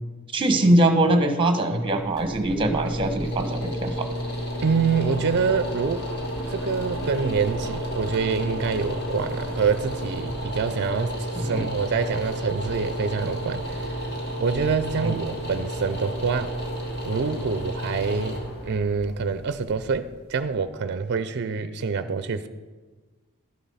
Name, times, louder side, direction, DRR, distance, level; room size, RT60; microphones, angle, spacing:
voice 1, 0.3-4.1 11.4-11.6 15.0-15.1, right 1 dB, 25° right, 1.1 m, -22 dB
sound 1, 1.8-20.7, equal, 50° left, 2.1 m, -31 dB
voice 2, 4.6-6.1 6.5-13.9 14.4-16.6 17.1-22.5, right 5 dB, 50° right, 0.5 m, -26 dB
12.5 x 7.3 x 5.5 m
head